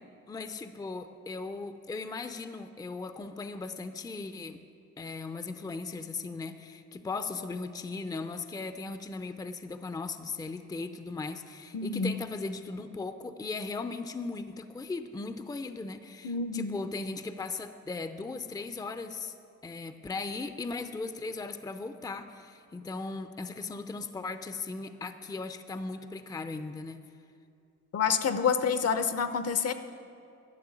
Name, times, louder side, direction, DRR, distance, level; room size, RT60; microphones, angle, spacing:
voice 1, 0.3-4.6 5.0-19.3 19.6-27.0, left 3 dB, 15° left, 10 dB, 0.5 m, -38 dB
voice 2, 11.7-12.1 16.2-16.8 27.9-29.7, left 6 dB, 55° left, 10 dB, 0.8 m, -28 dB
12.0 x 6.6 x 9.0 m, 2.5 s
cardioid pair, 90°, 30 cm